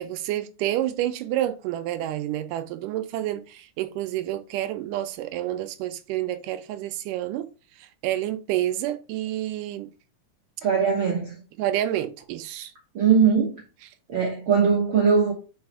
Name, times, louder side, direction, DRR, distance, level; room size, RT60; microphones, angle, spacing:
voice 1, 0.0-9.9 11.6-12.7, right 13 dB, 80° right, 2.1 m, -29 dB
voice 2, 10.6-11.3 12.9-13.6 14.1-15.3, right 6 dB, 55° right, 1.4 m, -20 dB
5.1 x 4.7 x 4.7 m
omnidirectional pair, 3.8 m